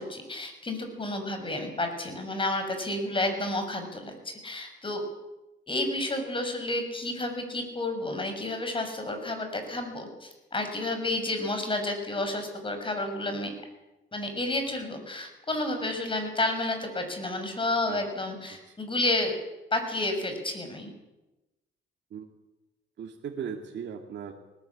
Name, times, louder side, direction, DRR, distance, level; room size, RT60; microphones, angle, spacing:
voice 1, 0.0-5.0 5.7-13.5 14.1-19.3 19.7-20.9, left 2 dB, 25° left, 6 dB, 6.6 m, -31 dB
voice 2, 23.0-24.3, right 7 dB, 65° right, 1 dB, 2.3 m, -37 dB
21.0 x 19.0 x 8.6 m, 1.0 s
cardioid pair, 90°, 20 cm